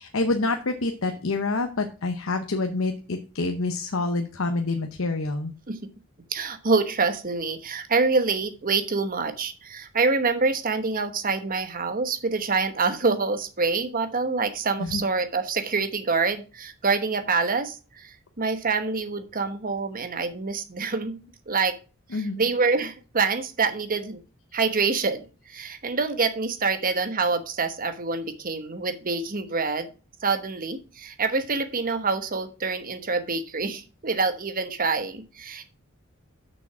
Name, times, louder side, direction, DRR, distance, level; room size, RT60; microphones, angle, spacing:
voice 1, 0.0-5.5 14.8-15.0 22.1-22.5, left 3 dB, 75° left, 5 dB, 0.8 m, -27 dB
voice 2, 6.3-21.2 21.5-21.8 22.1-24.2 24.5-29.9 30.2-35.7, right 4 dB, 45° right, 8 dB, 1.1 m, -26 dB
6.5 x 6.0 x 6.0 m, 0.34 s
head